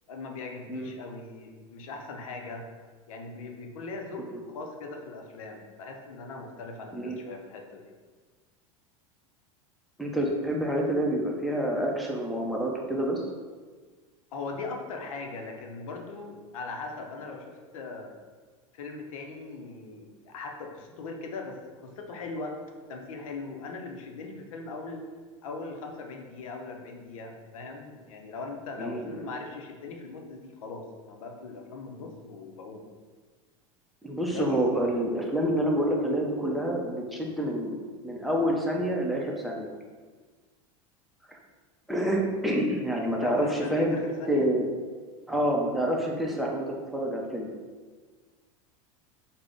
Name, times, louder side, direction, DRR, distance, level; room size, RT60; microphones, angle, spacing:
voice 1, 0.1-2.7 3.1-7.9 14.3-18.1 18.7-22.6 22.9-25.1 25.4-32.8 34.3-34.5 43.1-44.5, left 3 dB, 80° left, 3 dB, 0.6 m, -39 dB
voice 2, 10.0-13.2 28.8-29.2 34.0-37.8 38.0-39.7 41.9-44.0 44.3-44.7 45.3-47.5, equal, ahead, -2 dB, 0.6 m, -27 dB
3.6 x 2.1 x 3.5 m, 1.4 s
hypercardioid pair, 105°, 17 cm